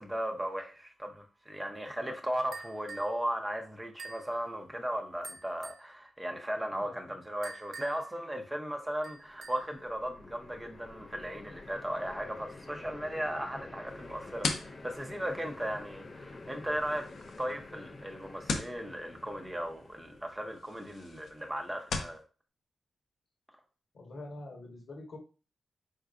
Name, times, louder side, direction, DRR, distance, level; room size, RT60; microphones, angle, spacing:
voice 1, 0.0-17.1 17.4-22.2, equal, 5° right, 0.6 m, -36 dB
sound 1, 2.5-3.2 4.0-4.3 5.2-5.9 7.4-8.1 9.0-9.7, right 4 dB, 55° right, 0.7 m, -46 dB
voice 2, 6.7-7.1 23.9-25.2, left 2 dB, 60° left, 1.1 m, -45 dB
sound 2, 9.2-20.5, left 3 dB, 35° left, 0.5 m, -49 dB
sound 3, 13.9-22.2, left 4 dB, 85° left, 0.8 m, -41 dB
4.5 x 3.7 x 2.4 m
wide cardioid pair, 145°, 0 cm